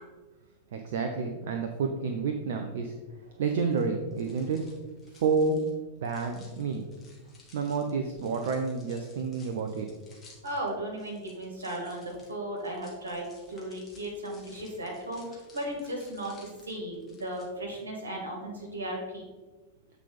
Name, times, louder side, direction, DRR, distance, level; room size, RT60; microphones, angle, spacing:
voice 1, 0.7-2.9 3.2-4.6 5.1-5.7 6.0-6.8 7.5-9.9, right 4 dB, 55° right, 5 dB, 0.5 m, -29 dB
sound 1, 3.7-17.5, left 3 dB, 20° left, 1.6 m, -58 dB
voice 2, 10.4-19.2, right 1 dB, 75° right, -1 dB, 1.9 m, -36 dB
8.1 x 4.0 x 4.0 m, 1.3 s
figure-of-eight pair, 90°, 0 cm